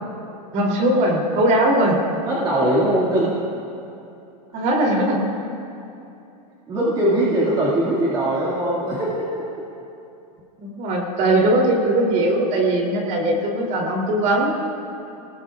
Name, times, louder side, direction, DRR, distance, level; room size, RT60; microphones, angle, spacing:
voice 1, 0.5-2.0 4.5-5.3 10.6-14.6, right 1 dB, 35° right, 0 dB, 3.0 m, -20 dB
voice 2, 2.3-3.4 6.7-9.5, right 1 dB, 20° right, -7 dB, 2.0 m, -21 dB
29.0 x 19.0 x 2.4 m, 2.8 s
supercardioid pair, 155°, 21 cm